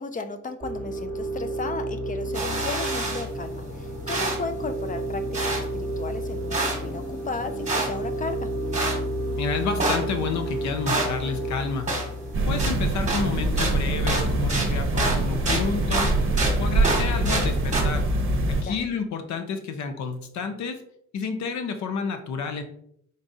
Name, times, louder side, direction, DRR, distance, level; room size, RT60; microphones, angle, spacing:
voice 1, 0.0-8.5 18.6-18.8, left 4 dB, 25° left, 8 dB, 0.4 m, -35 dB
sound 1, 0.6-12.6, right 1 dB, 5° left, 0.9 m, -31 dB
sound 2, 2.3-17.8, right 2 dB, 25° right, 1.2 m, -31 dB
voice 2, 9.3-11.9 12.5-16.1 16.6-18.0 18.6-20.8 21.1-22.6, left 5 dB, 65° left, 7 dB, 0.7 m, -30 dB
sound 3, 12.3-18.6, right 2 dB, 45° right, 0.8 m, -24 dB
3.9 x 3.5 x 2.6 m, 0.71 s
cardioid pair, 90°, 30 cm